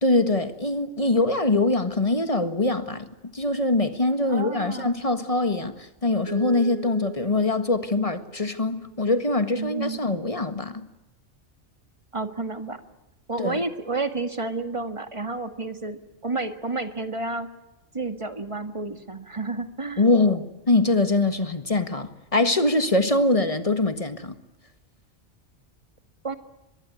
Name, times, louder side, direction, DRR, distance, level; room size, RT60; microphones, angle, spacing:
voice 1, 0.0-10.9 13.4-13.6 20.0-24.3, left 2 dB, 25° left, 1.6 m, -23 dB
voice 2, 4.3-4.9 9.6-10.0 12.1-12.8 13.3-17.5 17.9-20.1 26.2-26.3, right 3 dB, 25° right, 1.8 m, -30 dB
Mallet percussion, 6.3-9.2, right 12 dB, 65° right, 2.6 m, -41 dB
23.5 x 22.0 x 9.6 m
omnidirectional pair, 1.3 m